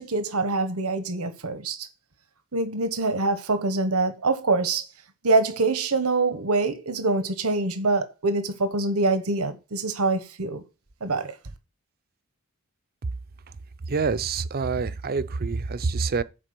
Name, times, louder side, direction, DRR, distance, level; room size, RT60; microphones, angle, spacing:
voice 1, 0.0-1.9 2.5-4.8 5.2-10.6 11.0-11.3, right 3 dB, 85° right, 1.2 m, -25 dB
voice 2, 13.9-16.2, right 4 dB, 45° right, 0.6 m, -26 dB
7.5 x 4.7 x 6.7 m
head